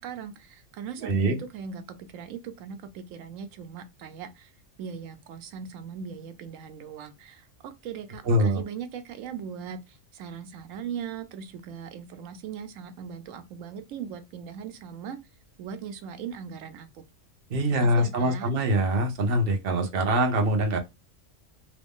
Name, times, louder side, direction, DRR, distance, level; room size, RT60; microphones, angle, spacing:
voice 1, 0.0-4.5 4.8-15.2 15.6-17.0 17.8-18.5, right 7 dB, 85° right, 1.0 m, -39 dB
voice 2, 1.0-1.4 8.3-8.6 17.5-20.8, right 1 dB, 55° right, 0.9 m, -24 dB
3.0 x 2.5 x 3.5 m
omnidirectional pair, 1.3 m